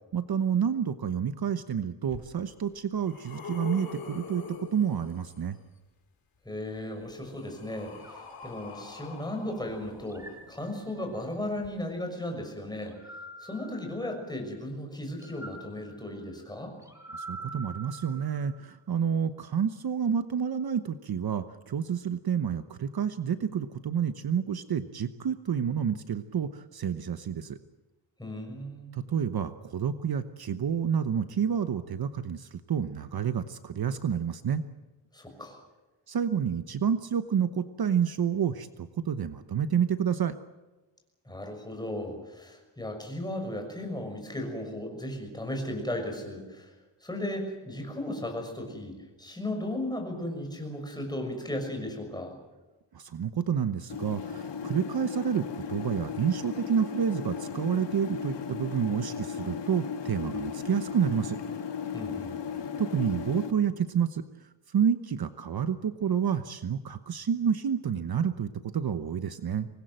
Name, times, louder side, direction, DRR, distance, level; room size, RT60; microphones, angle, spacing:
voice 1, 0.1-4.4 4.7-5.6 17.1-27.6 28.9-34.6 36.1-40.4 52.9-61.4 62.8-64.2 64.7-69.7, right 7 dB, 55° right, 10 dB, 1.1 m, -29 dB
sound 1, 2.1-2.2 2.8-5.5 6.7-10.6 11.6-11.7, left 5 dB, 50° left, 4.4 m, -44 dB
voice 2, 6.4-12.9 13.4-16.7 28.2-28.9 35.1-35.6 41.2-46.7 47.0-52.3 61.9-62.3, left 1 dB, 10° left, 3 dB, 6.3 m, -36 dB
sound 2, 8.0-9.4 10.0-11.3 12.8-14.5 15.2-18.7, right 2 dB, 5° right, 5.6 m, -47 dB
sound 3, 53.9-63.5, left 6 dB, 65° left, 1.8 m, -36 dB
25.0 x 20.5 x 7.8 m, 1.1 s
wide cardioid pair, 160°, 45 cm